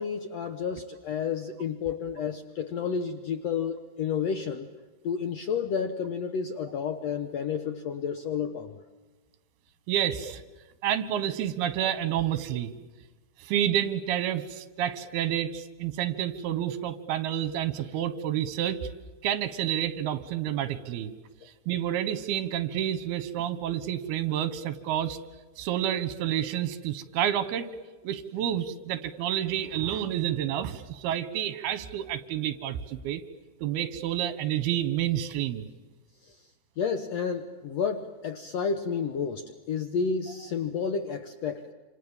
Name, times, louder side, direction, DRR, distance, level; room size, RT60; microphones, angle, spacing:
voice 1, 0.0-4.7 5.0-8.8 36.2-36.4 36.8-41.7, left 6 dB, 85° left, 8 dB, 1.4 m, -31 dB
voice 2, 9.9-10.4 10.8-12.7 13.4-18.9 19.2-21.1 21.7-25.2 25.6-27.7 28.0-33.2 33.6-35.7, right 11 dB, 75° right, 12 dB, 3.2 m, -29 dB
28.0 x 27.0 x 7.3 m, 1.3 s
omnidirectional pair, 4.6 m